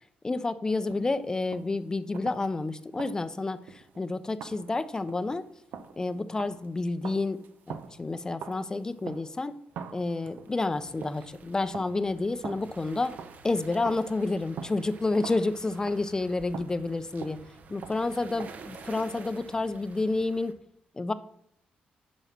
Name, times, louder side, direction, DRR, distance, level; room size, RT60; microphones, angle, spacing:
voice 1, 0.2-5.5 6.0-9.6 9.9-13.2 13.4-17.4 17.7-20.6 20.9-21.1, left 3 dB, 20° left, 13 dB, 0.6 m, -30 dB
steps in the church, 0.9-1.8 2.1-2.7 3.0-4.0 4.4-9.5 9.7-11.4 11.7-13.6 13.8-18.6, right 7 dB, 75° right, 0.7 m, -45 dB
sound 1, 10.7-20.5, right 4 dB, 55° right, 1.0 m, -50 dB
9.1 x 5.3 x 5.9 m, 0.68 s
cardioid pair, 100°, 3 cm